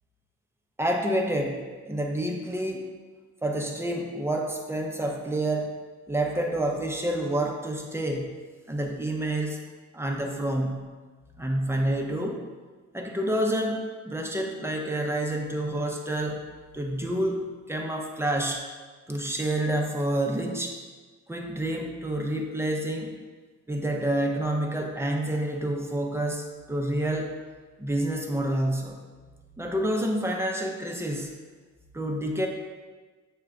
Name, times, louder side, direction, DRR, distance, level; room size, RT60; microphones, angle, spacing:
voice 1, 0.8-2.9 3.4-5.7 6.1-8.4 8.7-9.6 9.9-10.9 11.4-12.4 12.9-16.4 16.7-18.6 19.1-20.7 21.3-23.1 23.7-27.3 27.8-29.0 29.6-31.3 31.9-32.5, right 1 dB, 10° right, 1 dB, 0.6 m, -28 dB
6.4 x 2.5 x 3.3 m, 1.4 s
cardioid pair, 90°, 30 cm